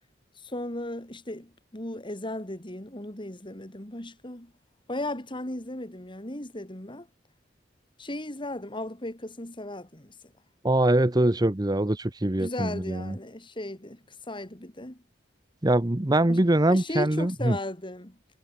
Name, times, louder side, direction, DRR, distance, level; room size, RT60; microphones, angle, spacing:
voice 1, 0.4-4.5 4.9-7.1 8.0-10.1 12.4-15.0 16.3-18.2, left 1 dB, 25° left, 3.0 m, -36 dB
voice 2, 10.6-13.1 15.6-17.6, right 1 dB, 20° right, 1.0 m, -23 dB
head